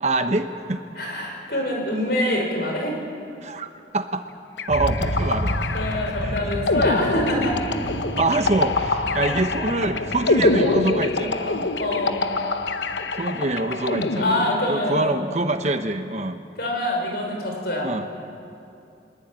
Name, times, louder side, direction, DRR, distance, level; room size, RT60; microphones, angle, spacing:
voice 1, 0.0-0.8 1.5-1.7 3.4-4.3 4.7-5.6 6.2-6.5 8.2-11.7 13.2-16.4 17.8-18.1, right 2 dB, 40° right, 8 dB, 1.1 m, -25 dB
voice 2, 1.0-3.0 5.7-7.6 9.2-9.3 11.8-12.2 14.2-15.2 16.6-17.9, left 1 dB, 60° left, 0 dB, 5.9 m, -25 dB
sound 1, 4.6-15.0, left 3 dB, 75° left, 1.0 m, -25 dB
sound 2, 4.7-13.5, equal, 60° right, 2.2 m, -32 dB
22.5 x 21.5 x 9.0 m, 2.6 s
head